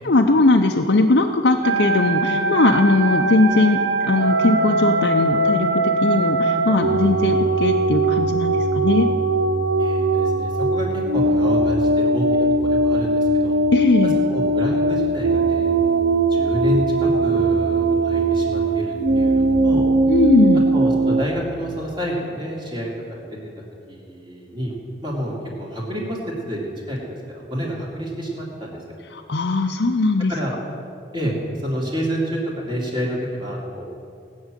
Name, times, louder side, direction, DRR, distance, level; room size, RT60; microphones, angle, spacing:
voice 1, 0.0-9.1 13.7-14.1 20.1-20.6 29.1-30.3, left 2 dB, 75° left, 3 dB, 0.7 m, -19 dB
sound 1, 1.6-21.2, right 2 dB, 85° right, 0.8 m, -20 dB
voice 2, 9.8-13.6 14.3-19.9 20.7-23.4 23.9-24.7 25.0-26.2 26.5-27.0 27.3-28.8 30.3-30.5 31.1-33.8, equal, 25° right, -3 dB, 2.8 m, -28 dB
18.5 x 6.3 x 9.0 m, 2.5 s
head